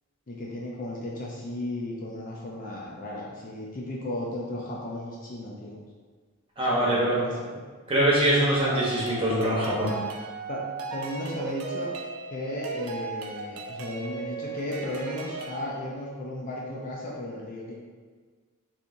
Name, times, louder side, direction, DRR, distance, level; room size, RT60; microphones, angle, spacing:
voice 1, 0.3-5.8 6.7-7.6 10.5-11.9 12.3-17.8, left 1 dB, 40° left, -3 dB, 0.4 m, -35 dB
voice 2, 6.6-7.2 7.9-9.9, right 1 dB, 25° right, -7 dB, 1.0 m, -23 dB
sound 1, 8.3-15.6, right 3 dB, 85° right, 0.5 m, -36 dB
3.9 x 2.9 x 2.6 m, 1.5 s
head